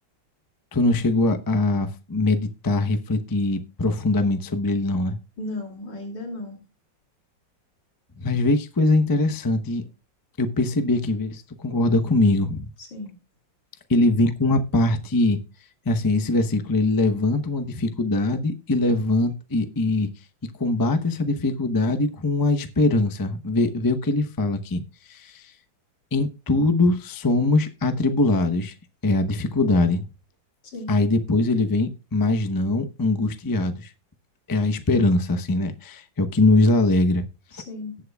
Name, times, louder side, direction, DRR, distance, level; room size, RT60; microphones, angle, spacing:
voice 1, 0.7-5.2 8.2-9.8 10.4-12.7 13.9-15.4 15.9-20.1 20.6-24.8 25.1-25.5 26.1-28.7 29.0-30.0 30.9-33.9 34.5-37.2, left 2 dB, 30° left, 7 dB, 0.3 m, -22 dB
voice 2, 5.4-6.6 12.8-13.1 30.6-31.0 37.5-38.0, left 2 dB, 65° left, 1 dB, 3.1 m, -35 dB
18.5 x 7.6 x 2.3 m, 0.32 s
omnidirectional pair, 2.0 m